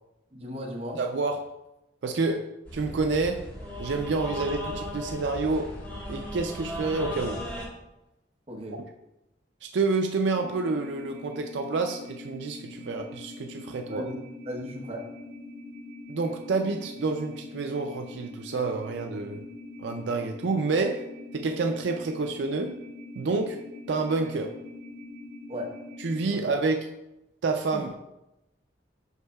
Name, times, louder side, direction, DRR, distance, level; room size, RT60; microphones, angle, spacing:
voice 1, 0.3-1.0 8.5-8.8 13.9-15.1 25.5-25.7 26.3-26.5 27.7-27.8, equal, 30° right, -1 dB, 1.0 m, -36 dB
voice 2, 1.0-1.5 2.0-3.5 3.8-5.7 6.1-7.4 8.8-8.9 9.7-14.0 16.1-19.4 19.8-22.8 23.2-24.6 26.0-26.9 27.4-28.0, right 3 dB, 75° right, 4 dB, 0.4 m, -28 dB
sound 1, 2.6-7.6, equal, 10° left, 1.4 m, -36 dB
sound 2, 10.3-26.2, left 2 dB, 55° right, 2.3 m, -43 dB
8.1 x 5.5 x 2.3 m, 0.92 s
head